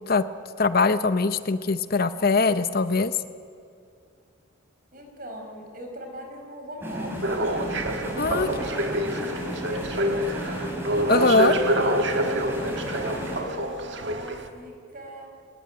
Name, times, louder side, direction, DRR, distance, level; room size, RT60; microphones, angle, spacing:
voice 1, 0.6-3.1 8.2-8.5 11.1-11.6, left 3 dB, 45° left, 12 dB, 0.7 m, -22 dB
voice 2, 4.9-7.7 8.1-9.0 9.3-10.7 12.6-15.3, equal, 40° right, 3 dB, 5.0 m, -40 dB
sound 1, 6.8-13.4, equal, 10° right, 4.2 m, -34 dB
sound 2, 7.2-14.5, right 1 dB, 60° right, 1.7 m, -27 dB
23.0 x 19.0 x 9.7 m, 2.3 s
head